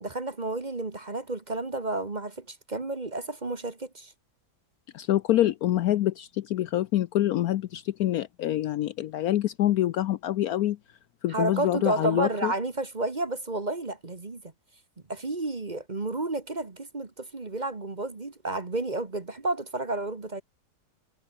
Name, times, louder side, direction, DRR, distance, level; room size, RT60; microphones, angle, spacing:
voice 1, 0.0-4.1 11.3-14.4 15.1-20.4, right 2 dB, 25° right, 1.5 m, -31 dB
voice 2, 4.9-10.8 11.2-12.5, left 13 dB, 70° left, 1.0 m, -26 dB
omnidirectional pair, 1.9 m